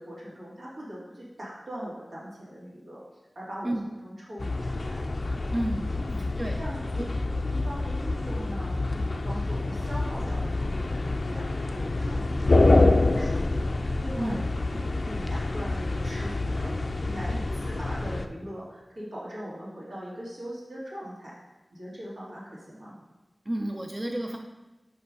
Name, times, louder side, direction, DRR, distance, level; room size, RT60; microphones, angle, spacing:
voice 1, 0.0-3.0 3.3-5.0 5.9-6.2 6.6-7.1 7.5-11.5 11.7-16.7 17.0-21.3 21.7-23.0, equal, 80° right, -7 dB, 2.5 m, -40 dB
sound 1, 4.4-18.3, left 2 dB, 60° left, 0.4 m, -27 dB
voice 2, 5.5-6.0 6.4-6.6 6.9-7.0 14.2-14.4 23.5-24.4, right 1 dB, 30° right, 2 dB, 0.5 m, -31 dB
5.6 x 4.7 x 5.3 m, 1.1 s
wide cardioid pair, 75°, 0 cm